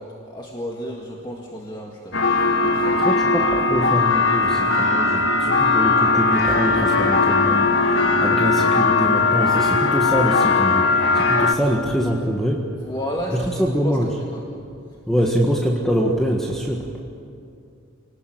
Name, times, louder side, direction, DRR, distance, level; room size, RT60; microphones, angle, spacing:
voice 1, 0.0-3.1 8.2-8.4 12.8-14.0 14.3-14.4, equal, 20° left, -1 dB, 2.0 m, -32 dB
sound 1, 2.1-11.5, left 3 dB, 60° left, 1.7 m, -19 dB
voice 2, 3.0-12.7 13.3-14.1 15.1-16.9, equal, ahead, -1 dB, 1.6 m, -24 dB
28.5 x 19.0 x 9.0 m, 2.5 s
head